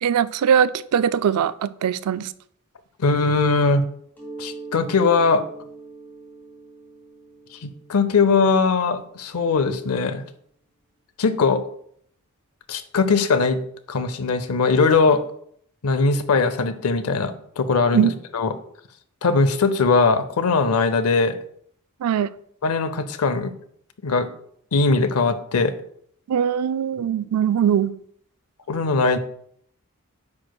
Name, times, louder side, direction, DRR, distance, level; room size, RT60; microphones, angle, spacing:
voice 1, 0.0-2.3 17.9-18.1 22.0-22.3 26.3-27.9, right 8 dB, 80° right, 15 dB, 0.3 m, -21 dB
voice 2, 3.0-3.8 4.4-5.4 7.5-10.2 11.2-11.6 12.7-13.6 13.9-15.2 15.8-18.5 19.2-21.4 22.6-23.5 24.0-24.3 24.7-25.7 28.7-29.2, left 4 dB, 75° left, 12 dB, 0.6 m, -20 dB
Mallet percussion, 4.1-9.7, right 3 dB, 10° left, 2.7 m, -42 dB
9.6 x 6.1 x 2.3 m, 0.67 s
head